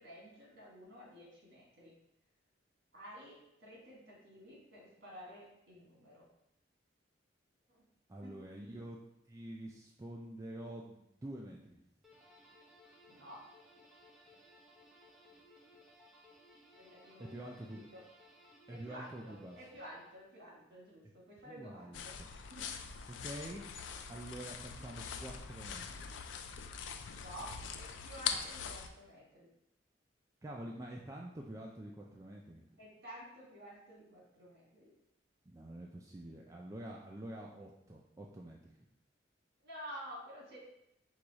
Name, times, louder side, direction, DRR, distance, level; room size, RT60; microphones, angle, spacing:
voice 1, 0.0-1.9 2.9-6.3 7.7-7.8 8.2-8.3 13.1-13.4 16.7-18.0 18.7-22.1 22.5-22.7 27.1-29.5 32.8-34.9 39.6-40.6, equal, 60° right, -4 dB, 1.5 m, -51 dB
voice 2, 8.1-9.0 9.3-11.8 17.3-17.9 18.7-19.6 21.5-22.3 23.1-26.2 30.4-32.8 35.5-38.8, right 1 dB, 15° right, -2 dB, 0.3 m, -47 dB
sound 1, 12.0-20.4, left 1 dB, ahead, 0.8 m, -62 dB
sound 2, 21.9-28.9, left 7 dB, 70° left, 0.4 m, -42 dB
4.6 x 2.3 x 3.9 m, 0.82 s
head